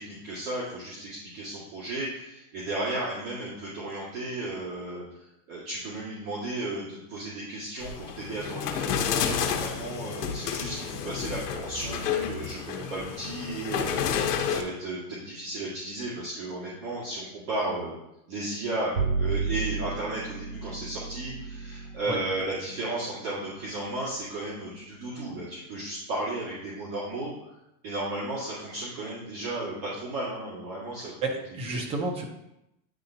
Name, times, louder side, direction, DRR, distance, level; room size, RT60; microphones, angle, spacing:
voice 1, 0.0-17.9 18.3-27.5 27.8-31.8, right 2 dB, 35° right, -9 dB, 2.0 m, -34 dB
sound 1, 7.8-14.6, left 8 dB, 85° left, 1.1 m, -30 dB
Bowed string instrument, 18.9-25.4, right 4 dB, 65° right, 2.3 m, -34 dB
voice 2, 31.0-32.2, right 3 dB, 15° right, 2 dB, 0.5 m, -31 dB
10.0 x 3.9 x 2.8 m, 0.85 s
supercardioid pair, 155°, 46 cm